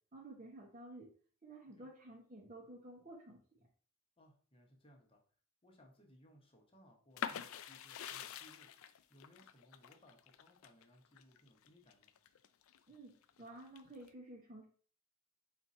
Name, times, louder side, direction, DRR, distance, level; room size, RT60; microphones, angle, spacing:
voice 1, 0.1-1.1 1.4-3.7 12.9-14.7, right 1 dB, 35° right, -3 dB, 0.8 m, -53 dB
voice 2, 4.2-5.2 5.6-8.7 9.1-12.1, equal, 25° left, 1 dB, 1.0 m, -65 dB
sound 1, 7.2-12.8 13.2-14.1, left 8 dB, 75° left, 0.4 m, -46 dB
4.4 x 2.5 x 4.2 m, 0.43 s
head